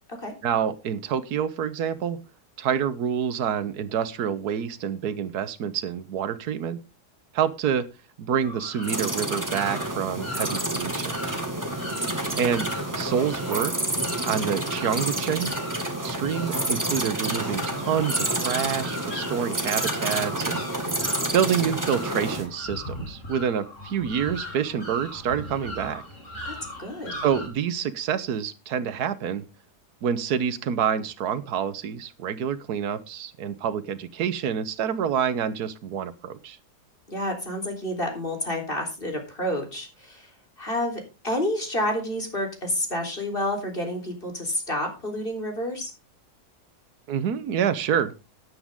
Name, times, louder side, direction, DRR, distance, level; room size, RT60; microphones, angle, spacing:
voice 1, 0.4-2.2 2.6-6.8 7.3-7.9 8.2-11.2 12.4-12.7 12.9-13.7 14.3-15.5 16.0-21.1 21.3-26.0 27.1-29.4 30.0-36.6 47.1-48.2, right 8 dB, 80° right, 13 dB, 1.5 m, -27 dB
sound 1, 8.4-27.5, left 1 dB, 50° left, 3.9 m, -39 dB
sound 2, 8.8-22.5, right 1 dB, 10° right, 1.6 m, -29 dB
voice 2, 11.8-12.3 26.5-27.2 37.1-40.3 40.6-45.9, left 1 dB, 35° left, 3 dB, 3.9 m, -29 dB
13.5 x 9.9 x 3.6 m, 0.29 s
omnidirectional pair, 1.7 m